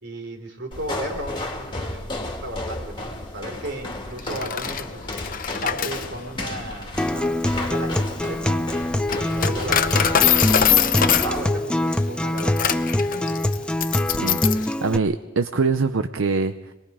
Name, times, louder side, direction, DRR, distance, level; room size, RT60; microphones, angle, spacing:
voice 1, 0.0-5.1 5.6-8.7 9.1-13.4, right 1 dB, 55° right, 4 dB, 3.5 m, -35 dB
sound 1, 0.7-11.5, left 2 dB, 25° left, 2.3 m, -33 dB
Coin (dropping), 4.2-14.7, left 9 dB, 40° left, 0.7 m, -24 dB
Acoustic guitar, 7.0-15.0, left 1 dB, 5° left, 0.6 m, -24 dB
voice 2, 14.2-16.7, right 4 dB, 75° right, 9 dB, 0.6 m, -24 dB
26.0 x 20.5 x 4.9 m, 1.1 s
head